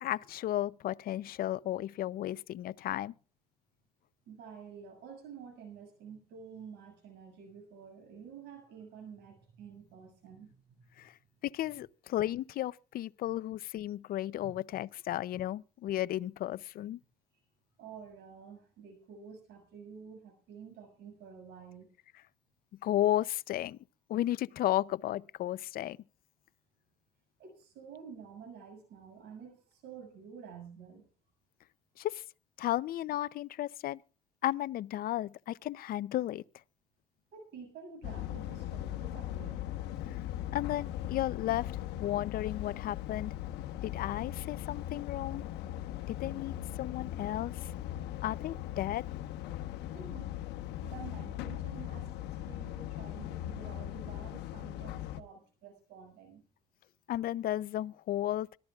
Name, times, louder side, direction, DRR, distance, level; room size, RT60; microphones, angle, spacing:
voice 1, 0.0-3.1 11.0-11.1 11.4-17.0 22.8-23.8 24.1-26.0 32.0-32.2 32.6-34.0 34.4-36.4 40.1-40.2 40.5-41.7 42.0-43.3 43.8-45.4 46.1-47.7 48.2-49.1 57.1-58.6, left 13 dB, 60° left, 0.6 m, -34 dB
voice 2, 4.3-11.1 14.4-14.5 15.3-15.5 17.8-21.9 27.4-31.1 37.3-39.7 41.4-41.5 49.9-50.4 50.8-56.4, right 6 dB, 80° right, 6.8 m, -50 dB
sound 1, 38.0-55.2, left 13 dB, 85° left, 1.2 m, -39 dB
25.5 x 13.0 x 2.4 m
cardioid pair, 110°, 17 cm